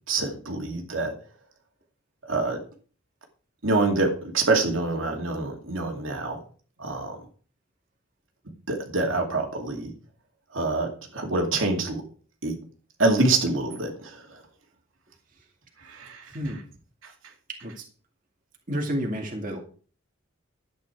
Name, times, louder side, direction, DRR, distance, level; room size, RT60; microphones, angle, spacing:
voice 1, 0.1-1.1 2.3-2.6 3.6-6.4 6.8-7.2 8.7-9.9 10.5-12.0 12.4-12.6 13.0-14.4 15.9-16.2, right 2 dB, 70° right, 2 dB, 2.5 m, -26 dB
voice 2, 18.7-19.6, equal, 40° right, 1 dB, 2.3 m, -30 dB
12.0 x 9.1 x 4.7 m, 0.41 s
head